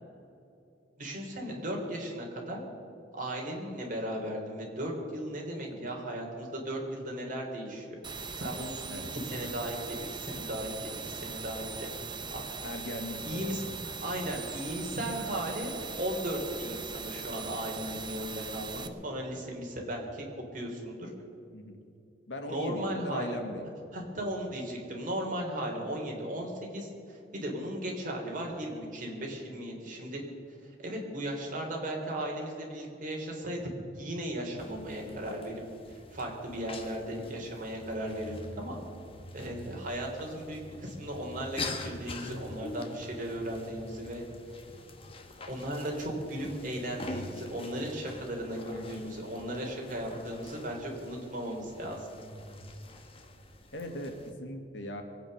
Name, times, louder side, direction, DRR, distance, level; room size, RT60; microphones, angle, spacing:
voice 1, 1.0-2.6 3.1-11.9 12.3-12.5 13.2-20.3 20.5-21.1 22.5-23.4 23.9-30.2 30.6-33.7 34.0-35.6 35.9-38.8 39.3-44.2 45.5-52.1, right 1 dB, 50° right, 0 dB, 3.4 m, -36 dB
sound 1, 8.0-18.9, right 5 dB, 25° right, 0.9 m, -40 dB
voice 2, 12.6-13.6 21.5-21.8 22.3-23.6 50.2-50.4 53.7-55.0, left 1 dB, 85° left, 4 dB, 2.1 m, -39 dB
sound 2, 34.6-54.3, left 2 dB, 30° left, 1.3 m, -45 dB
23.0 x 9.0 x 6.6 m, 2.7 s
head